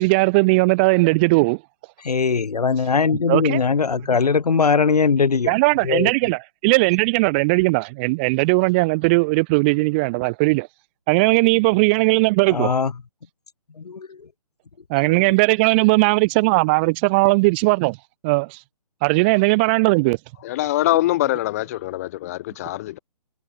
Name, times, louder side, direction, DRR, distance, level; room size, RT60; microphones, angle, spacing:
voice 1, 0.0-1.6 3.3-3.6 5.5-10.7 11.1-12.8 14.9-18.0 18.2-18.6 19.0-20.2, right 27 dB, 15° right, 1.5 m, -18 dB
voice 2, 2.0-5.5 5.8-6.1 12.5-12.9 13.8-14.2 15.1-15.2, left 5 dB, 80° left, 4.4 m, -20 dB
voice 3, 20.4-23.0, left 16 dB, 25° left, 3.3 m, -23 dB
hypercardioid pair, 170°, 20 cm